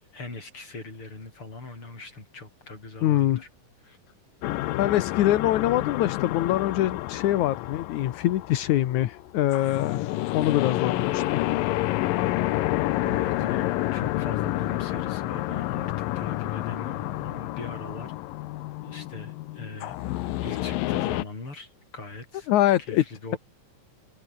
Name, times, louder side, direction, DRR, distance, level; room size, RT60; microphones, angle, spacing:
voice 1, 0.1-3.5 3.8-4.0 13.0-18.1 18.8-20.0 20.4-22.5 22.8-23.4, left 3 dB, 40° left, 7.8 m, -40 dB
voice 2, 3.0-3.4 4.8-10.0 10.3-11.4 22.5-23.0, left 13 dB, 70° left, 2.4 m, -24 dB
sound 1, 4.4-21.2, left 17 dB, 90° left, 2.6 m, -29 dB
omnidirectional pair, 3.9 m